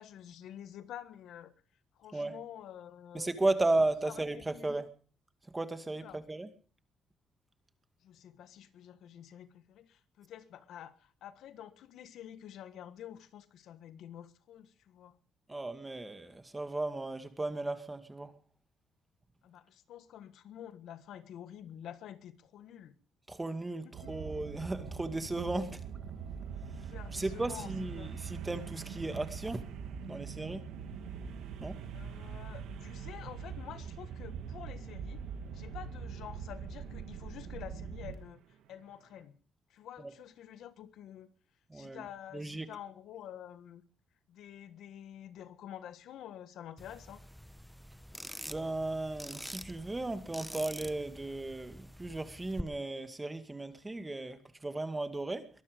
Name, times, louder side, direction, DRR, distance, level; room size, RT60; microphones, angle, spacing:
voice 1, 0.0-1.5 2.0-3.3 4.0-4.8 5.9-6.2 8.0-15.2 19.4-23.0 23.8-24.1 26.7-28.1 31.9-35.2 35.5-39.4 39.7-41.3 41.7-43.8 44.3-47.2, left 10 dB, 80° left, 1.4 m, -49 dB
voice 2, 3.1-4.9 5.5-6.5 15.5-18.3 23.3-25.8 27.1-29.6 30.1-30.7 31.6-31.8 41.7-42.0 42.3-42.7 48.5-55.5, right 2 dB, 15° right, 2.1 m, -35 dB
sound 1, 23.9-38.4 38.7-38.8, right 6 dB, 90° right, 2.6 m, -43 dB
sound 2, 46.8-52.6, equal, ahead, 1.0 m, -46 dB
22.5 x 12.0 x 5.2 m
cardioid pair, 90°, 0 cm